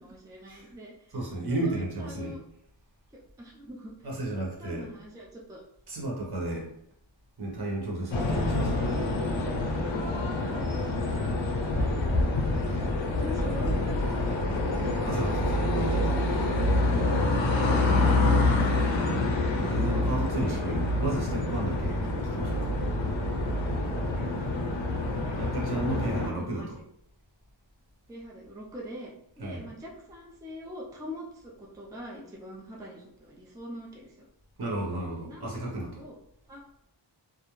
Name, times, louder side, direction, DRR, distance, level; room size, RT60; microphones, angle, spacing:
voice 1, 0.0-1.2 1.6-2.4 3.4-3.9 4.4-5.6 10.4-12.0 12.6-14.5 20.4-20.7 24.1-24.3 25.2-25.5 25.9-26.7 28.1-29.1 29.4-34.2 35.2-35.5 36.0-36.2 36.5-36.6, left 1 dB, 10° right, -3 dB, 0.3 m, -43 dB
voice 2, 1.1-2.3 4.0-4.9 5.9-6.7 7.4-8.9 15.0-16.2 19.6-22.7 25.4-26.8 29.4-29.7 34.6-36.0, right 2 dB, 55° right, -3 dB, 0.9 m, -33 dB
sound 1, 8.1-26.3, left 2 dB, 85° left, 0.6 m, -27 dB
2.3 x 2.1 x 3.0 m, 0.72 s
wide cardioid pair, 120°, 45 cm